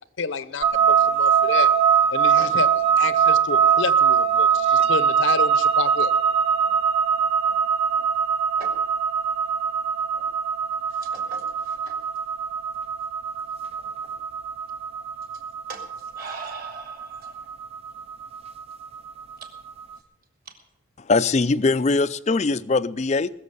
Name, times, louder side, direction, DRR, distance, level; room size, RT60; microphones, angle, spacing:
voice 1, 0.2-1.7 2.1-2.7 3.0-6.1, left 4 dB, 65° left, 15 dB, 0.8 m, -29 dB
sound 1, 0.6-19.7, right 7 dB, 30° right, 0.6 m, -22 dB
voice 2, 10.8-12.0 13.8-14.2 15.3-15.4 15.7-17.5 19.4-19.5 20.4-20.6, right 3 dB, 45° right, 4 dB, 2.8 m, -41 dB
voice 3, 21.1-23.3, left 3 dB, 30° left, 15 dB, 0.4 m, -21 dB
20.5 x 7.3 x 6.9 m, 0.84 s
head